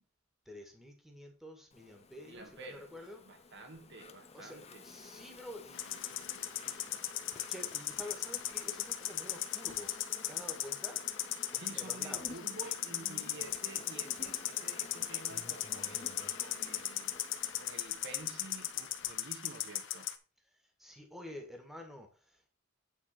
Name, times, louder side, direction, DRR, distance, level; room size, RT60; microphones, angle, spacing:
voice 1, 0.4-3.2 4.3-6.9 7.2-10.0 10.3-11.0 11.5-12.4 20.5-22.6, left 1 dB, ahead, 1.6 m, -50 dB
Insect, 1.7-19.1, left 4 dB, 30° left, 0.7 m, -53 dB
voice 2, 2.2-4.8 11.5-17.2 17.5-20.1, right 2 dB, 55° right, 1.4 m, -50 dB
sound 1, 5.7-20.2, left 12 dB, 65° left, 0.9 m, -38 dB
8.9 x 4.1 x 5.9 m
head